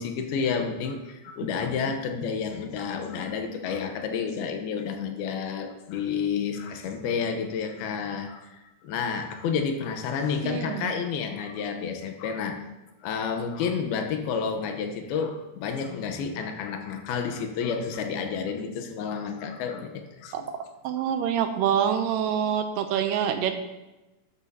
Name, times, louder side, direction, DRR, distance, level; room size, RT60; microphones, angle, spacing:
voice 1, 0.0-12.6 13.0-20.5, left 6 dB, 85° left, 5 dB, 2.8 m, -30 dB
voice 2, 10.4-10.9 20.3-20.4 20.8-23.5, right 8 dB, 80° right, 7 dB, 2.1 m, -26 dB
12.5 x 11.0 x 2.8 m, 1.0 s
omnidirectional pair, 4.4 m